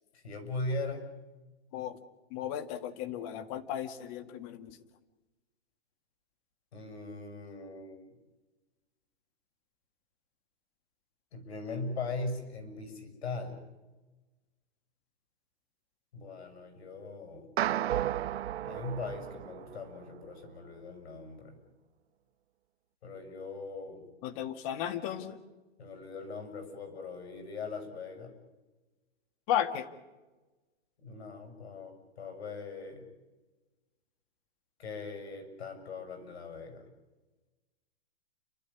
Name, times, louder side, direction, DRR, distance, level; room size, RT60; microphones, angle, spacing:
voice 1, 0.1-1.1 6.7-8.2 11.3-13.6 16.1-17.5 18.6-21.6 23.0-24.1 25.8-28.3 31.0-33.0 34.8-36.9, left 3 dB, 75° left, 7 dB, 6.9 m, -40 dB
voice 2, 2.3-4.8 24.2-25.4 29.5-29.9, left 10 dB, 35° left, 10 dB, 1.8 m, -34 dB
sound 1, 17.6-20.0, right 12 dB, 75° right, 0.8 m, -33 dB
30.0 x 12.5 x 10.0 m, 1.2 s
hypercardioid pair, 155°, 32 cm